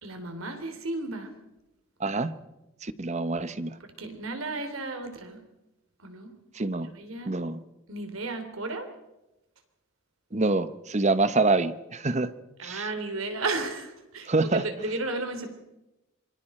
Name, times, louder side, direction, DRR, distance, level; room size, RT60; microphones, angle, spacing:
voice 1, 0.0-1.3 3.8-5.4 6.0-6.3 6.9-7.3 7.9-8.9 12.6-15.5, right 2 dB, 80° right, 6 dB, 3.3 m, -34 dB
voice 2, 2.0-2.3 2.8-3.8 6.5-6.9 7.3-7.6 10.3-12.3 12.6-12.9 14.3-14.6, right 3 dB, 35° right, 13 dB, 0.9 m, -26 dB
26.5 x 24.0 x 4.4 m, 0.96 s
head